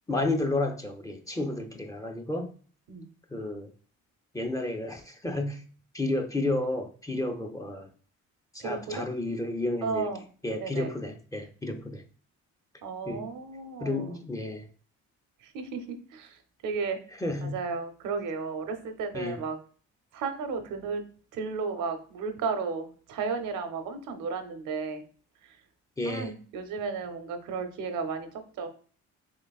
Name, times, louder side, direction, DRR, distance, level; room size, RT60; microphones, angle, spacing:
voice 1, 0.1-2.5 3.3-3.7 4.3-5.6 5.9-7.9 8.5-10.1 10.4-12.0 13.1-13.2 13.8-14.7 17.2-17.6 19.1-19.4 26.0-26.3, left 2 dB, 10° left, 0.5 m, -31 dB
voice 2, 8.6-9.1 9.8-10.3 10.6-10.9 12.8-14.2 15.4-15.8 16.1-17.0 17.4-19.6 20.1-21.0 21.3-25.0 25.4-25.6 26.0-28.3 28.6-28.7, right 5 dB, 85° right, 0.7 m, -34 dB
3.8 x 3.0 x 2.3 m
cardioid pair, 90°, 30 cm